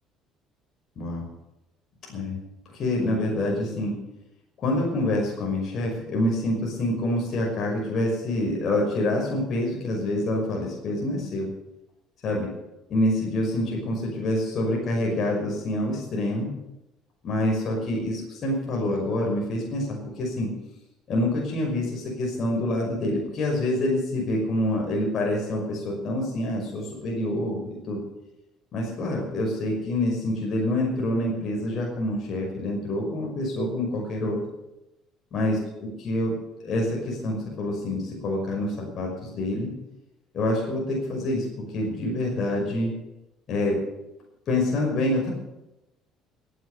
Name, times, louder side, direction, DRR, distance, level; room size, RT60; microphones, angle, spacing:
voice 1, 1.0-1.3 2.1-2.4 2.7-3.9 4.6-11.5 12.2-12.5 12.9-16.5 17.2-20.5 21.1-28.0 28.7-34.4 35.3-36.3 36.6-39.7 40.3-41.4 41.7-42.9 43.5-43.8 44.5-45.3, left 1 dB, 50° left, -1 dB, 5.8 m, -26 dB
16.0 x 10.5 x 8.1 m, 0.94 s
cardioid pair, 105°, 0 cm